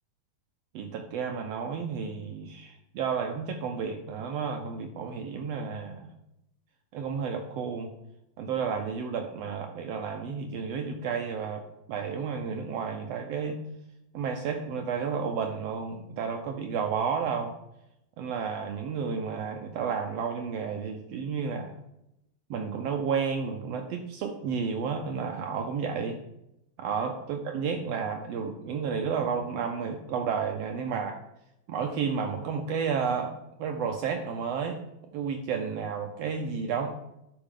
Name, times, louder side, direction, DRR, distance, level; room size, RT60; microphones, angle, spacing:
voice 1, 0.7-6.1 6.9-7.9 8.4-11.6 11.9-13.6 14.1-17.5 18.2-21.7 22.5-26.2 26.8-31.2 31.7-34.8 35.1-36.9, right 6 dB, 75° right, 4 dB, 1.6 m, -31 dB
12.0 x 5.4 x 3.7 m, 0.85 s
omnidirectional pair, 3.4 m